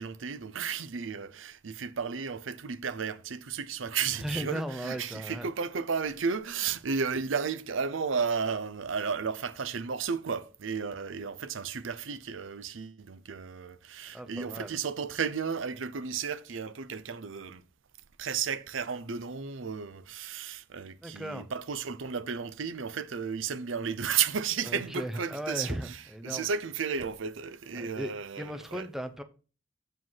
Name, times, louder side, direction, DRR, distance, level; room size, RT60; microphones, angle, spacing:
voice 1, 0.0-17.6 18.2-28.9, right 6 dB, 90° right, 0.6 m, -33 dB
voice 2, 4.2-5.5 14.1-14.7 21.0-21.5 24.6-26.5 27.8-28.1 28.4-29.2, equal, ahead, 0.7 m, -36 dB
7.7 x 5.2 x 5.6 m
head